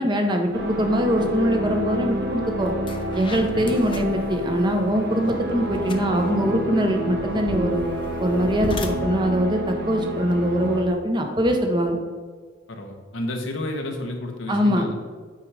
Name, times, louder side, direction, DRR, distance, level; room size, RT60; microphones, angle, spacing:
voice 1, 0.0-2.7 3.1-7.8 8.2-12.0 14.5-14.9, equal, 25° right, 4 dB, 0.8 m, -22 dB
sound 1, 0.5-10.8, right 1 dB, 60° right, 0.9 m, -29 dB
sound 2, 2.1-2.3 2.7-10.9, left 2 dB, 25° left, 0.5 m, -38 dB
voice 2, 12.7-14.9, left 1 dB, 85° left, 2 dB, 1.0 m, -31 dB
8.3 x 5.0 x 3.3 m, 1.5 s
head